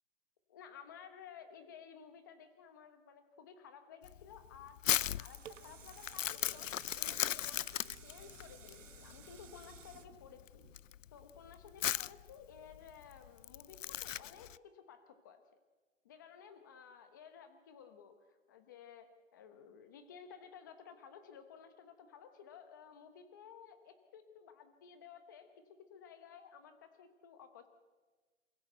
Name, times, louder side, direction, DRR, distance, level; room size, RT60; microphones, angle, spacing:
voice 1, 0.5-10.7 11.1-15.4 16.0-27.7, left 7 dB, 15° left, 8 dB, 1.0 m, -55 dB
Crumpling crinkling, 4.0-14.6, left 11 dB, 75° left, 0.6 m, -38 dB
sound 1, 4.9-11.2 11.7-11.8, right 8 dB, 65° right, 1.3 m, -57 dB
27.5 x 15.5 x 7.9 m, 1.3 s
hypercardioid pair, 175°, 39 cm